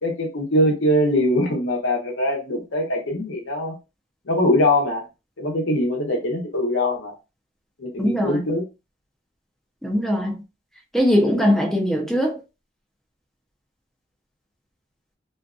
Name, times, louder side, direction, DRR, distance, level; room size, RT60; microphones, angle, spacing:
voice 1, 0.0-3.7 4.3-5.0 5.4-7.1 7.8-8.6, left 1 dB, 75° left, 0.9 m, -22 dB
voice 2, 8.0-8.4 9.8-10.4 10.9-12.4, equal, ahead, 0.6 m, -20 dB
2.6 x 2.4 x 2.3 m
head